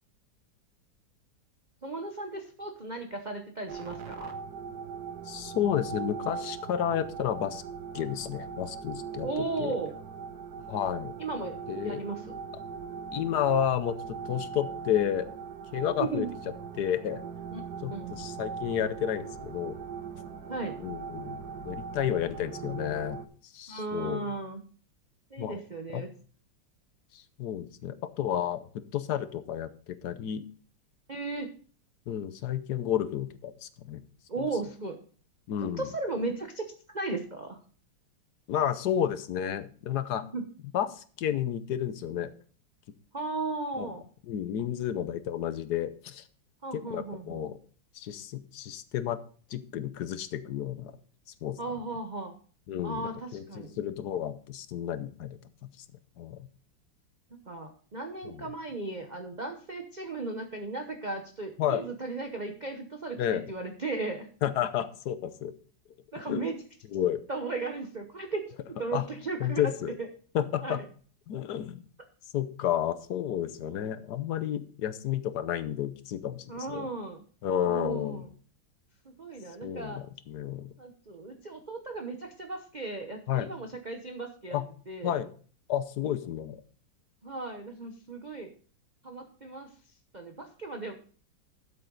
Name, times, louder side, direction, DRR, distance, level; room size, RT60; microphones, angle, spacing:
voice 1, 1.8-4.4 9.2-9.9 11.2-12.4 16.0-16.3 17.5-17.6 17.9-18.2 20.5-20.8 23.7-24.6 25.3-26.1 31.1-31.5 34.3-35.0 35.6-36.7 36.9-37.6 40.2-40.4 43.1-44.0 46.6-47.5 51.6-52.3 52.8-53.8 57.3-64.3 66.1-66.6 67.3-69.7 70.0-70.1 70.6-70.8 76.5-77.2 77.6-78.3 79.0-80.0 80.8-84.6 84.9-85.1 87.2-88.5 89.0-91.0, right 3 dB, 35° right, 4 dB, 0.7 m, -36 dB
sound 1, 3.7-23.3, right 6 dB, 60° right, 1.5 m, -40 dB
voice 2, 5.3-7.6 7.9-9.3 9.6-9.7 10.7-11.1 11.7-12.0 13.1-15.3 15.7-16.2 16.8-17.2 17.8-19.7 20.8-23.2 23.4-24.2 25.4-25.6 25.9-26.0 27.1-30.5 32.1-34.0 35.5-35.8 38.5-40.2 40.7-42.3 43.8-43.9 44.3-46.2 46.9-47.6 47.9-49.2 49.5-50.9 51.4-51.6 52.7-53.0 53.3-55.4 55.8-55.9 56.2-56.5 58.2-58.3 61.6-61.8 63.2-63.4 64.4-65.5 66.3-66.4 66.9-67.2 68.9-69.0 69.4-69.9 70.3-70.8 71.3-71.8 72.3-76.9 77.4-78.2 79.6-80.7 83.3-83.5 84.5-84.6 85.0-85.3 85.7-86.6, left 10 dB, 65° left, 13 dB, 1.2 m, -31 dB
12.5 x 7.7 x 3.9 m, 0.42 s
omnidirectional pair, 2.1 m